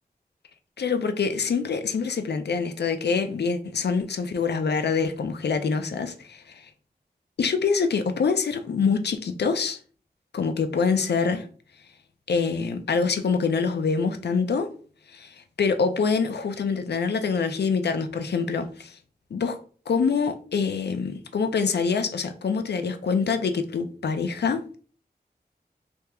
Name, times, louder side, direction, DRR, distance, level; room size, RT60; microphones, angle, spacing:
voice 1, 0.8-6.7 7.4-9.8 10.3-11.5 12.3-14.7 15.1-19.0 19.3-19.6 19.9-24.8, left 5 dB, 85° left, 0.4 m, -25 dB
3.4 x 2.9 x 2.3 m
wide cardioid pair, 75°, 17 cm